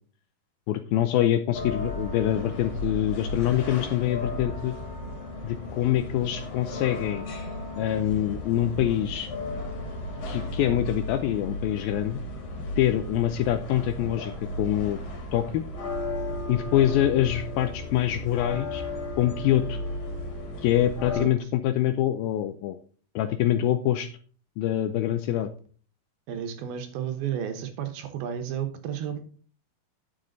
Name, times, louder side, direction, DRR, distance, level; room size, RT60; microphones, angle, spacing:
voice 1, 0.7-4.8 5.4-7.3 7.8-9.3 10.3-12.2 12.8-15.0 15.3-15.6 16.5-18.8 19.2-19.8 20.6-22.8 23.2-24.1 24.6-25.5, left 12 dB, 80° left, 8 dB, 2.2 m, -25 dB
sound 1, 1.5-21.2, left 1 dB, 55° left, 3.2 m, -35 dB
voice 2, 26.3-29.2, right 9 dB, 70° right, 7 dB, 2.8 m, -32 dB
10.5 x 7.4 x 3.9 m, 0.42 s
omnidirectional pair, 4.8 m